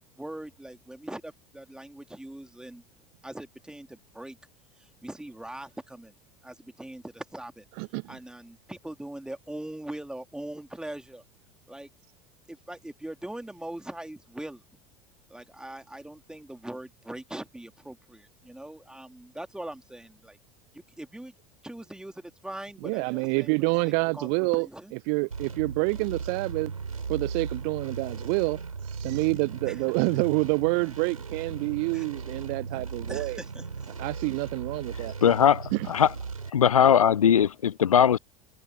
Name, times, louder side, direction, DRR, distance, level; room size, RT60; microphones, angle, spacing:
voice 1, 0.2-2.8 3.2-4.4 5.0-6.1 6.4-7.6 8.1-11.2 11.7-11.9 12.5-14.6 15.3-20.4 20.7-21.4 21.6-24.9 29.7-30.4 31.9-32.1 33.1-34.1, right 1 dB, 5° right, 2.7 m, -41 dB
voice 2, 7.8-8.2 22.8-24.7 25.1-26.7 27.1-28.6 29.0-33.4 34.0-35.1 35.7-35.9, right 40 dB or more, 50° right, 1.0 m, -27 dB
sound 1, 25.3-36.5, right 5 dB, 80° right, 4.5 m, -37 dB
voice 3, 35.2-36.1 36.5-38.2, left 8 dB, 75° left, 0.6 m, -20 dB
figure-of-eight pair, 75°, 18 cm